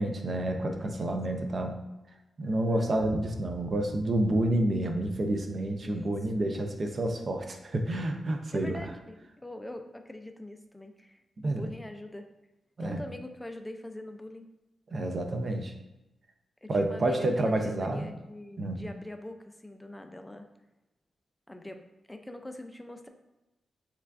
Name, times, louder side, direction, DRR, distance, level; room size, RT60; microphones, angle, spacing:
voice 1, 0.0-1.8 2.4-8.8 11.4-11.6 12.8-13.0 14.9-15.7 16.7-18.1 18.6-18.8, right 1 dB, 45° right, 4 dB, 0.5 m, -29 dB
voice 2, 0.8-1.2 5.8-6.5 8.5-12.3 12.8-14.5 16.6-20.5 21.5-23.1, left 1 dB, 10° left, 6 dB, 0.4 m, -43 dB
sound 1, 3.0-8.5, left 2 dB, 80° left, 0.8 m, -48 dB
6.9 x 2.3 x 2.4 m, 1.0 s
cardioid pair, 95°, 0 cm